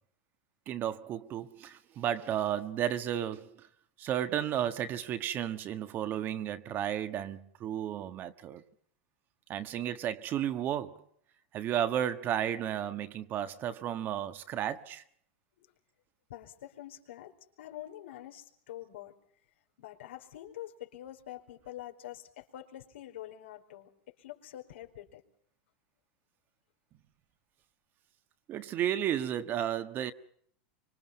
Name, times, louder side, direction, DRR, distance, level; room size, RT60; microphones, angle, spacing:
voice 1, 0.7-3.7 4.0-8.6 9.5-11.0 11.5-15.0 28.5-30.1, right 10 dB, 30° right, 1.4 m, -33 dB
voice 2, 16.3-19.1 19.8-25.2, left 13 dB, 85° left, 4.5 m, -46 dB
25.0 x 24.5 x 5.6 m
supercardioid pair, 145°, 6 cm